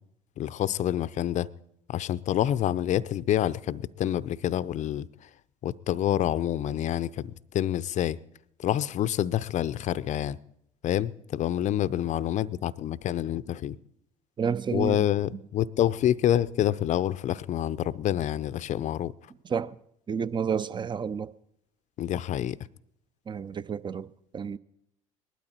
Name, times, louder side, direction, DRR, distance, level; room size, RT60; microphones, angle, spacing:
voice 1, 0.4-1.5 1.9-5.1 5.6-8.2 8.6-10.4 10.8-13.8 14.7-19.1 22.0-22.6, left 11 dB, 45° left, 0.5 m, -27 dB
voice 2, 14.4-15.0 19.4-19.7 20.1-21.3 23.3-24.1 24.3-24.6, right 6 dB, 30° right, 0.6 m, -30 dB
19.5 x 12.5 x 4.3 m
hypercardioid pair, 60°, 16 cm